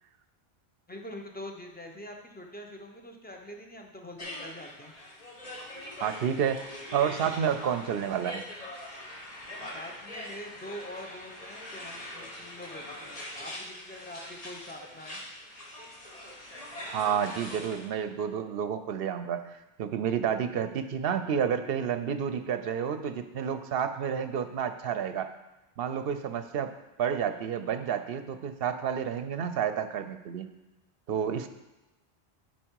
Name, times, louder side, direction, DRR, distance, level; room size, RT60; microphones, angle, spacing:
voice 1, 0.9-4.9 9.6-15.2, left 1 dB, 10° left, 2 dB, 0.7 m, -44 dB
sound 1, 4.2-17.9, left 1 dB, 35° left, 1.3 m, -43 dB
voice 2, 6.0-6.6 6.9-8.5 16.8-25.3 25.8-26.7 27.0-30.5 31.1-31.5, right 8 dB, 70° right, 10 dB, 0.8 m, -30 dB
10.0 x 4.5 x 4.6 m, 1.0 s
omnidirectional pair, 1.1 m